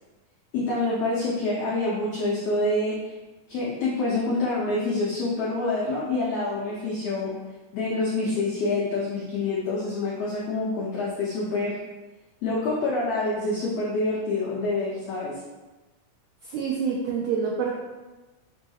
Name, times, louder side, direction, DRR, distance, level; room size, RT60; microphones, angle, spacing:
voice 1, 0.5-3.1 3.5-7.3 7.7-11.7 12.4-15.4, left 2 dB, 85° left, -6 dB, 1.4 m, -27 dB
voice 2, 16.4-17.7, right 6 dB, 90° right, -3 dB, 1.5 m, -27 dB
6.9 x 2.7 x 2.3 m, 1.1 s
omnidirectional pair, 3.7 m